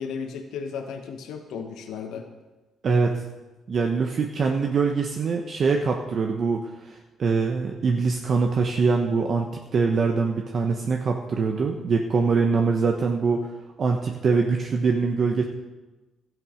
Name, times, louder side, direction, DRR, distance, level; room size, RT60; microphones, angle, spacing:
voice 1, 0.0-2.3, left 6 dB, 80° left, 4 dB, 1.1 m, -34 dB
voice 2, 2.8-3.2 3.7-13.5 13.8-15.4, right 4 dB, 50° right, 3 dB, 1.0 m, -23 dB
13.0 x 9.5 x 5.1 m, 1.2 s
cardioid pair, 90°, 0 cm